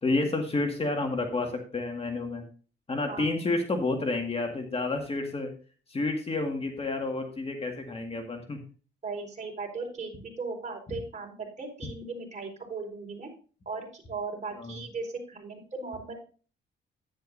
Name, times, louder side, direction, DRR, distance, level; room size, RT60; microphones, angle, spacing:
voice 1, 0.0-2.4 2.9-5.5 5.9-8.6 14.6-14.8, left 2 dB, 30° left, 4 dB, 1.9 m, -30 dB
voice 2, 9.0-13.3 13.7-16.1, right 4 dB, 35° right, 0 dB, 4.5 m, -37 dB
10.5 x 10.0 x 2.6 m, 0.38 s
cardioid pair, 90°, 20 cm